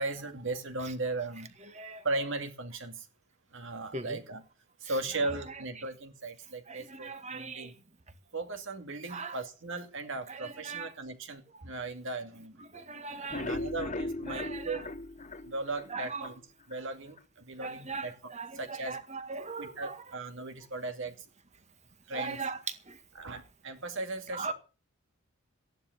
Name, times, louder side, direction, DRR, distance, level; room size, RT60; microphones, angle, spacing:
voice 1, 0.0-1.5 2.0-3.1 3.5-4.4 4.8-7.7 8.3-12.5 13.3-14.9 15.4-16.4 16.7-19.0 19.6-21.1 22.1-22.4 23.1-24.5, right 2 dB, 60° right, 2.5 m, -37 dB
voice 2, 6.7-7.7 9.1-9.3 10.3-10.9 12.7-13.4 14.3-14.8 15.9-16.3 17.6-20.0 22.1-22.6 22.9-23.0 24.3-24.5, right 4 dB, 30° right, 1.8 m, -39 dB
sound 1, 13.1-16.3 16.7-16.8 17.2-17.3 17.6-17.7, left 2 dB, 30° left, 0.8 m, -37 dB
15.0 x 10.5 x 6.8 m
head